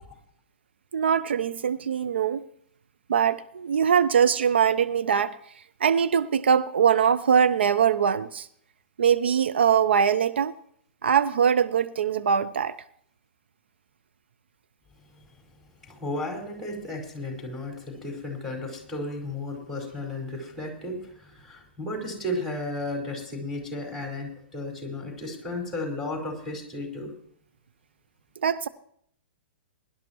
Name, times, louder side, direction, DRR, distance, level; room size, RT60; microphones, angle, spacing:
voice 1, 0.9-2.4 3.1-5.4 5.8-8.5 9.0-10.5 11.0-12.7 28.4-28.7, right 7 dB, 70° right, 0.6 m, -22 dB
voice 2, 15.9-27.1, left 1 dB, 5° left, 4.8 m, -34 dB
22.5 x 11.5 x 3.0 m
figure-of-eight pair, 110°, 6 cm